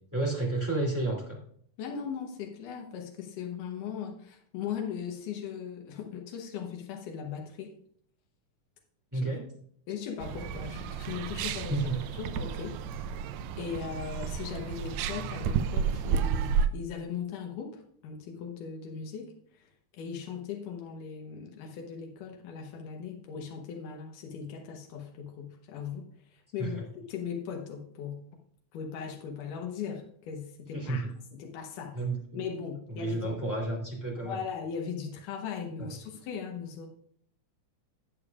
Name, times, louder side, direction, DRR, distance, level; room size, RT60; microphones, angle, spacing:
voice 1, 0.1-1.4 9.1-9.4 11.7-12.0 26.6-26.8 30.7-31.1 31.9-32.4 32.9-34.4 35.8-35.9, right 2 dB, 5° right, -4 dB, 2.3 m, -31 dB
voice 2, 1.8-7.7 9.2-9.3 9.9-11.8 12.1-12.8 13.6-26.1 26.3-26.8 27.1-28.2 28.7-31.1 31.4-32.0 32.3-33.3 34.2-36.9, left 7 dB, 85° left, 1 dB, 2.6 m, -38 dB
sound 1, 10.2-16.7, right 7 dB, 80° right, 1.6 m, -31 dB
17.5 x 6.7 x 2.4 m, 0.64 s
omnidirectional pair, 3.6 m